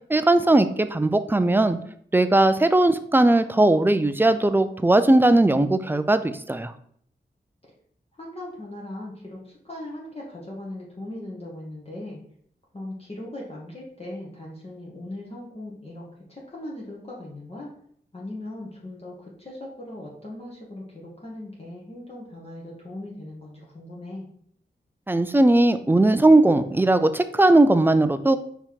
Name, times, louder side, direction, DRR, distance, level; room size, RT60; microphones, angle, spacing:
voice 1, 0.1-1.8 2.1-6.7 25.1-28.4, right 2 dB, 10° right, 11 dB, 0.4 m, -18 dB
voice 2, 8.1-12.2 12.7-17.7 18.1-24.3, left 1 dB, 30° left, -4 dB, 1.3 m, -39 dB
4.4 x 2.9 x 3.6 m, 0.64 s
cardioid pair, 45°, 19 cm